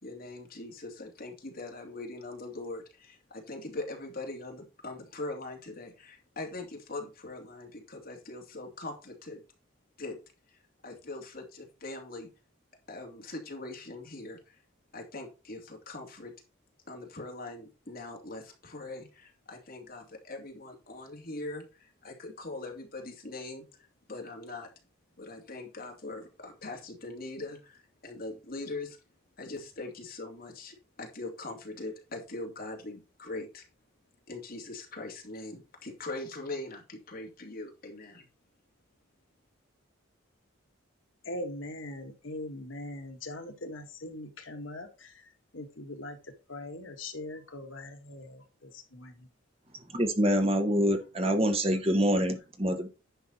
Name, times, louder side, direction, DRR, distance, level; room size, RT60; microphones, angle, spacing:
voice 1, 0.0-9.4 10.0-10.2 10.5-12.3 12.9-14.6 14.9-16.3 16.9-23.6 24.1-24.7 25.2-29.0 29.4-33.6 34.3-38.3, left 2 dB, 45° left, 2.8 m, -41 dB
voice 2, 41.3-45.1 45.5-46.2 46.5-48.4 48.9-49.1, left 1 dB, 75° left, 1.9 m, -41 dB
voice 3, 49.9-52.9, equal, 30° right, 1.5 m, -26 dB
10.0 x 5.8 x 4.4 m
head